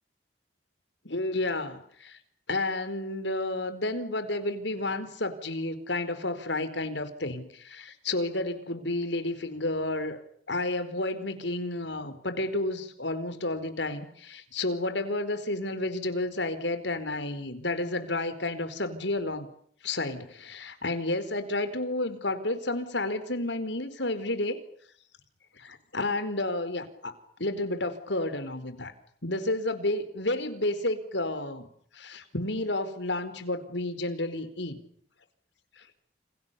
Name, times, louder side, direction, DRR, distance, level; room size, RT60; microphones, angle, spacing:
voice 1, 1.0-2.2 2.5-10.2 10.5-19.5 19.8-24.6 25.6-28.9 29.2-31.7 31.9-34.8 35.8-35.9, left 2 dB, 75° left, 11 dB, 4.7 m, -31 dB
30.0 x 28.0 x 7.0 m, 0.63 s
head